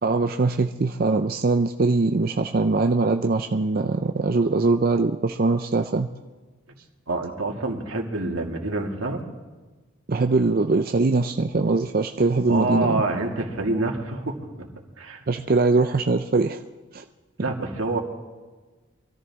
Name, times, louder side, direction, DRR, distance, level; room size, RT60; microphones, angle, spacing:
voice 1, 0.0-6.1 10.1-13.0 15.3-16.6 16.9-17.0, right 3 dB, 45° right, 5 dB, 0.5 m, -22 dB
voice 2, 7.1-9.2 12.5-14.7 15.0-15.2 17.4-18.0, right 2 dB, 85° right, 1 dB, 2.3 m, -27 dB
24.0 x 14.0 x 3.6 m, 1.3 s
head